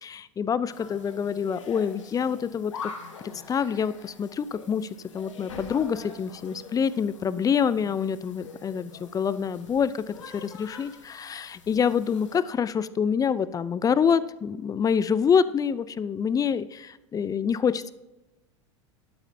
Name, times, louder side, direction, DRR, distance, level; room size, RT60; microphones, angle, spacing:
voice 1, 0.0-2.9 3.2-4.9 5.1-17.9, left 7 dB, 20° left, 16 dB, 0.5 m, -26 dB
sound 1, 0.7-12.4, left 5 dB, 75° left, 1.6 m, -45 dB
12.0 x 8.9 x 2.8 m, 0.96 s
hypercardioid pair, 85°, 16 cm